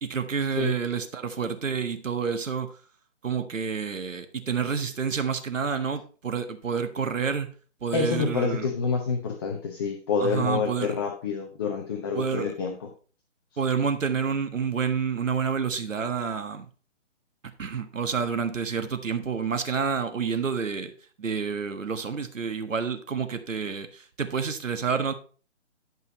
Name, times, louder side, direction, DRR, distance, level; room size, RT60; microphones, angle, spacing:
voice 1, 0.0-2.7 3.2-7.5 7.8-8.7 10.2-11.0 12.1-12.5 13.6-16.7 17.6-20.9 21.2-25.1, right 6 dB, 80° right, 1.4 m, -29 dB
voice 2, 7.9-12.7, left 5 dB, 20° left, 0.8 m, -27 dB
11.0 x 5.5 x 4.0 m
hypercardioid pair, 150°, 38 cm